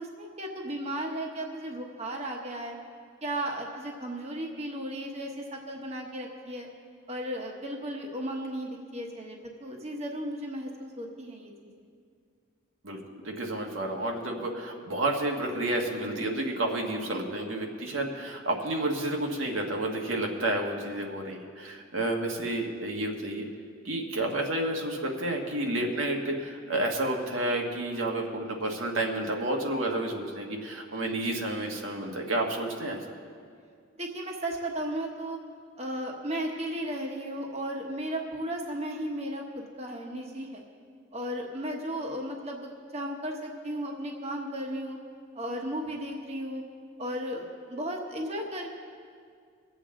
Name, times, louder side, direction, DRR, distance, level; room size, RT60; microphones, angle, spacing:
voice 1, 0.0-2.8 3.2-6.7 7.1-11.7 34.0-35.4 35.8-40.6 41.1-45.0 45.3-46.6 47.0-48.7, right 1 dB, 35° right, 1 dB, 1.1 m, -35 dB
voice 2, 13.2-23.4 23.8-33.0, right 1 dB, 85° right, 0 dB, 1.5 m, -30 dB
22.5 x 8.1 x 3.8 m, 2.2 s
head